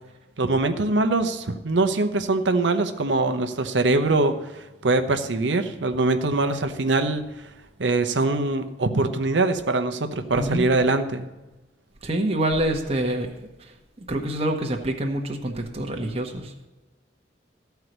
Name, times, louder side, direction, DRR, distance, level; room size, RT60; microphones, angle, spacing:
voice 1, 0.4-7.2 7.8-11.3, right 2 dB, 85° right, 8 dB, 0.9 m, -23 dB
voice 2, 12.0-13.3 14.1-16.5, right 1 dB, 35° right, 2 dB, 1.2 m, -26 dB
13.5 x 4.7 x 8.0 m, 1.1 s
head